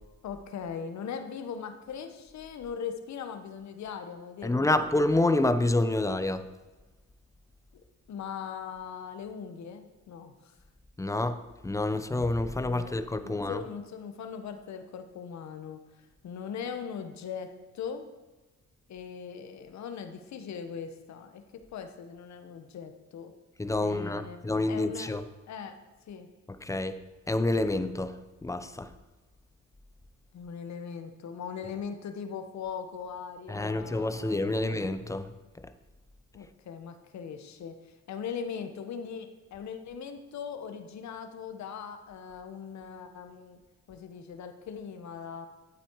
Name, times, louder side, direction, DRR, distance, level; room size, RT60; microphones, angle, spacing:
voice 1, 0.2-4.8 8.1-10.3 11.9-12.0 12.6-13.0 13.2-15.8 16.2-17.5 17.7-18.0 18.9-21.4 21.7-23.3 23.8-25.1 25.5-25.8 26.1-26.3 30.3-34.7 36.3-43.6 43.9-45.5, left 7 dB, 65° left, 7 dB, 1.2 m, -40 dB
voice 2, 4.4-6.5 11.0-13.6 23.6-25.2 26.5-27.0 27.3-28.9 33.5-35.3, left 2 dB, 10° left, 11 dB, 0.7 m, -28 dB
11.5 x 8.5 x 4.7 m, 1.2 s
cardioid pair, 90°, 30 cm